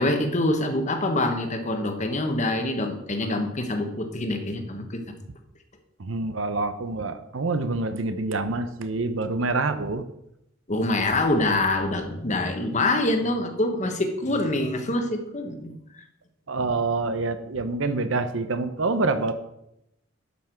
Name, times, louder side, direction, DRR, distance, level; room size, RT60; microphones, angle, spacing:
voice 1, 0.0-5.0 10.7-16.0, left 2 dB, 35° left, 5 dB, 1.2 m, -25 dB
voice 2, 6.0-10.0 16.5-19.3, right 3 dB, 70° right, 10 dB, 0.8 m, -26 dB
11.5 x 5.9 x 4.5 m, 0.82 s
head